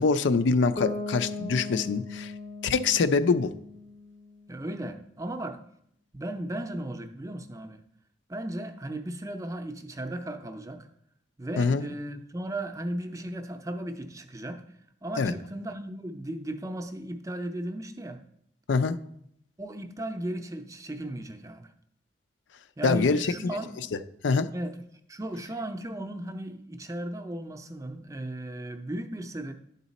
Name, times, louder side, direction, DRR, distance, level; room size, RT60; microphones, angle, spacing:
voice 1, 0.0-2.3 2.6-3.5 11.6-11.9 15.2-15.3 18.7-19.0 22.8-23.3 24.2-24.5, left 4 dB, 85° left, 10 dB, 0.4 m, -24 dB
Bass guitar, 0.8-4.6, left 2 dB, 35° left, 0.6 m, -38 dB
voice 2, 4.5-5.6 6.1-7.8 8.3-10.9 11.4-14.6 15.0-18.2 19.6-21.7 22.8-23.9 24.5-24.8 25.1-29.5, right 1 dB, 20° right, 6 dB, 0.5 m, -36 dB
11.5 x 4.0 x 4.1 m, 0.71 s
head